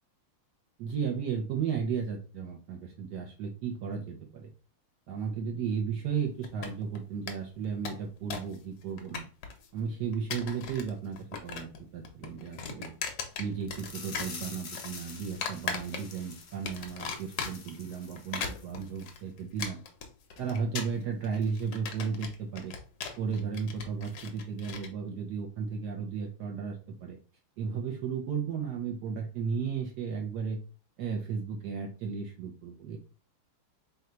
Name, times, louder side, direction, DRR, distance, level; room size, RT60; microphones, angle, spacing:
voice 1, 0.8-4.5 5.1-9.3 9.7-12.9 13.4-19.8 20.4-22.7 23.2-27.2 27.6-30.6 31.0-33.0, right 6 dB, 70° right, 1 dB, 1.0 m, -34 dB
sound 1, 6.4-7.0 7.3-7.4 7.6-8.6 8.8-9.7 10.1-10.9 11.2-11.8 12.0-13.9 14.1-14.9 15.4-16.3 16.7-17.8 18.2-24.9, left 6 dB, 65° left, 1.2 m, -38 dB
sound 2, 13.7-18.7 19.0-19.2 19.6-19.7, left 4 dB, 85° left, 0.6 m, -46 dB
3.8 x 2.3 x 4.2 m, 0.35 s
omnidirectional pair, 2.4 m